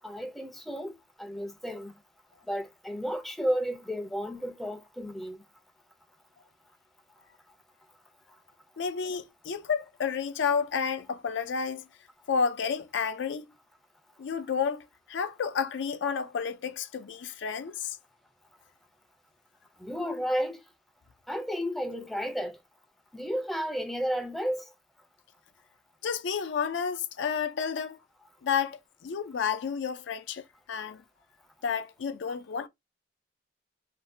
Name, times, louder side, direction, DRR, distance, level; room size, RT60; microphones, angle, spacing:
voice 1, 0.0-1.9 2.5-5.4 19.8-20.6 21.3-22.6 23.1-24.6, equal, ahead, 0.4 m, -32 dB
voice 2, 8.8-11.8 12.3-13.5 14.2-18.0 26.0-28.0 28.4-30.4 30.7-31.0 31.6-32.7, left 6 dB, 75° left, 0.4 m, -31 dB
2.6 x 2.1 x 3.1 m
head